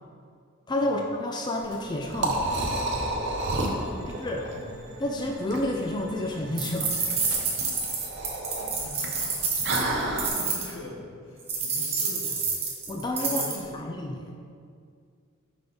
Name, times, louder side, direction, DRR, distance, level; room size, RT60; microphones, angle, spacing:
voice 1, 0.7-2.4 4.2-4.4 5.0-6.9 12.9-14.3, left 1 dB, 20° left, 1 dB, 0.4 m, -30 dB
Liquid, 1.6-10.3, right 2 dB, 60° right, 0.7 m, -31 dB
sound 1, 2.3-7.3, right 2 dB, 85° right, 1.0 m, -46 dB
voice 2, 3.8-4.8 8.0-8.3 8.6-9.5 9.9-12.5 13.2-13.8, left 1 dB, 80° left, -1 dB, 1.1 m, -43 dB
sound 2, 6.6-10.7 11.5-13.6, right 4 dB, 30° right, 0.9 m, -28 dB
5.8 x 5.2 x 3.8 m, 2.2 s
head